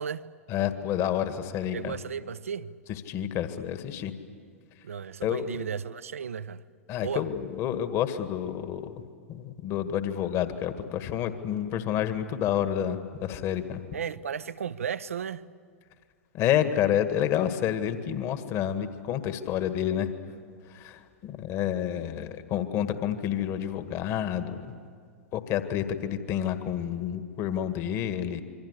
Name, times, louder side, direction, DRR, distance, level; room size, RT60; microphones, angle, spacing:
voice 1, 0.5-1.9 3.1-4.1 5.2-5.4 6.9-8.9 9.3-13.8 16.3-20.1 20.7-24.7 25.3-28.4, left 10 dB, 40° left, 1.9 m, -29 dB
voice 2, 1.7-2.7 4.8-6.6 7.0-7.3 13.9-15.5, right 7 dB, 75° right, 0.8 m, -34 dB
27.5 x 24.0 x 8.4 m
figure-of-eight pair, 95°, 8 cm